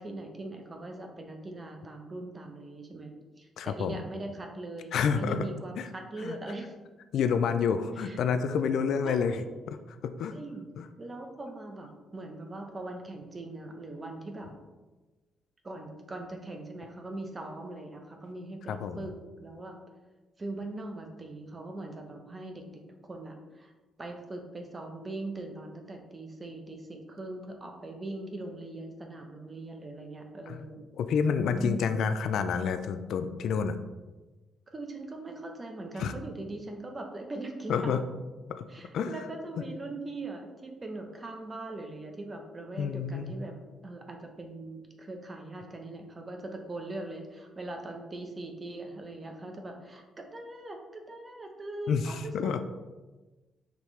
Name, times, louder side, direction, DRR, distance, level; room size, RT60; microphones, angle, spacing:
voice 1, 0.0-6.7 8.0-8.2 9.0-9.5 10.3-10.6 11.0-14.5 15.6-19.1 19.4-19.8 20.4-23.7 24.0-30.8 31.5-31.9 34.7-38.0 38.7-43.5 43.8-52.6, right 2 dB, 30° right, 3 dB, 0.8 m, -41 dB
voice 2, 3.6-4.0 4.9-5.4 5.8-5.9 6.2-6.4 7.1-9.4 10.0-10.3 10.8-10.9 18.7-19.1 30.5-30.6 31.0-33.7 36.0-36.1 37.7-38.0 38.6-38.7 38.9-39.1 42.8-43.3 51.9-52.6, left 6 dB, 75° left, 9 dB, 0.3 m, -28 dB
5.2 x 3.1 x 3.1 m, 1.2 s
cardioid pair, 90°, 0 cm